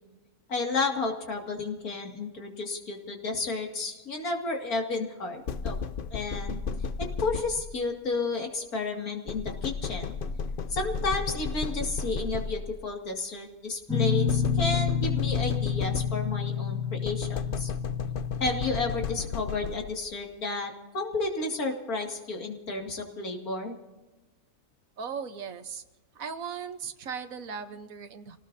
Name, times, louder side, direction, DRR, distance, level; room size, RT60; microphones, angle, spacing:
voice 1, 0.5-5.8 6.1-6.6 7.0-10.1 10.7-17.7 18.4-23.8, left 3 dB, 70° left, 2 dB, 2.7 m, -32 dB
sound 1, 5.5-7.9 9.3-12.8 14.3-16.5 17.0-20.1, left 5 dB, 55° left, 0.6 m, -34 dB
Guitar, 13.9-19.1, left 7 dB, ahead, 1.8 m, -29 dB
voice 2, 25.0-25.8 26.1-28.4, right 6 dB, 65° right, 9 dB, 1.4 m, -37 dB
28.0 x 18.5 x 2.7 m, 1.1 s
omnidirectional pair, 1.6 m